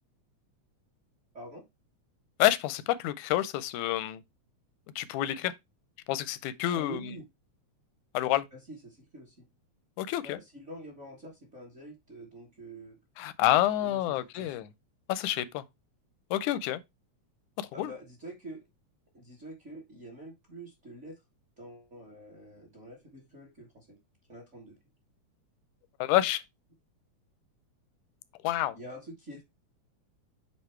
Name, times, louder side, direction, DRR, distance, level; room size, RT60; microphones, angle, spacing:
voice 1, 2.4-4.2 5.0-5.5 6.1-7.0 8.1-8.4 10.0-10.4 13.2-14.7 15.1-15.6 16.3-16.8 17.6-17.9 26.0-26.4 28.4-28.8, left 14 dB, 85° left, 2.0 m, -28 dB
voice 2, 6.7-7.2 8.5-9.4 10.2-13.0 13.8-14.5 17.7-18.6 19.1-21.2 21.6-24.0 24.3-24.8 28.7-29.4, right 1 dB, 35° right, 1.1 m, -46 dB
8.2 x 2.8 x 4.4 m
omnidirectional pair, 3.4 m